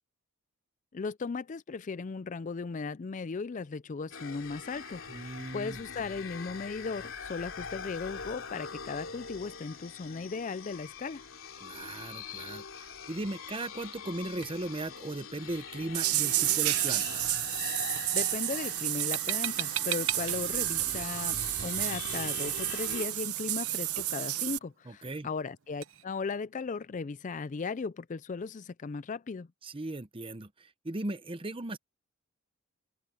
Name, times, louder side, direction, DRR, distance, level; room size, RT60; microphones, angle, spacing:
voice 1, 0.9-11.2 18.1-29.5, left 4 dB, 35° left, 0.4 m, -37 dB
sound 1, 4.1-23.1, left 5 dB, 60° left, 3.7 m, -43 dB
voice 2, 5.1-5.8 11.6-17.3 24.9-25.3 29.6-31.8, right 2 dB, 25° right, 0.8 m, -38 dB
sound 2, 6.6-26.0, right 11 dB, 60° right, 0.9 m, -45 dB
sound 3, 15.9-24.6, right 15 dB, 85° right, 1.0 m, -31 dB
open air
head